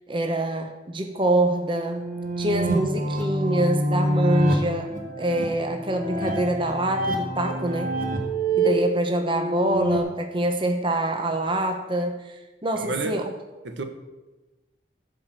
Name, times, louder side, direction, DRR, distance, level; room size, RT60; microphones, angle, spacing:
voice 1, 0.1-2.0 2.4-7.9 8.6-13.3, right 1 dB, 25° right, 4 dB, 1.0 m, -25 dB
sound 1, 1.1-10.0, right 1 dB, 45° right, 2.0 m, -26 dB
voice 2, 12.7-13.2 13.6-13.8, right 3 dB, 75° right, 6 dB, 1.3 m, -30 dB
15.5 x 5.1 x 7.6 m, 1.1 s
head